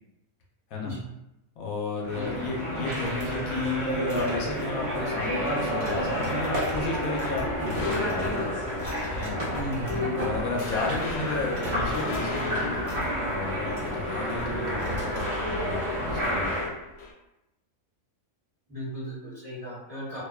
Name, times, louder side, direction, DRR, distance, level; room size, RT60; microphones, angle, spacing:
voice 1, 1.6-8.6 9.1-9.4 10.1-12.8 13.2-16.6, left 3 dB, 85° left, -2 dB, 1.1 m, -33 dB
sound 1, 2.0-16.7, equal, 55° right, 1.0 m, -30 dB
sound 2, 2.8-11.0 11.3-12.3 12.7-15.4, right 1 dB, 75° right, 1.2 m, -46 dB
sound 3, 7.2-9.1 9.5-9.7 10.1-10.3 10.6-14.1 16.1-17.1, left 3 dB, 60° left, 0.7 m, -38 dB
voice 2, 9.5-10.0 18.7-20.2, equal, 30° right, -11 dB, 0.9 m, -36 dB
2.7 x 2.0 x 2.2 m, 0.90 s
omnidirectional pair, 1.5 m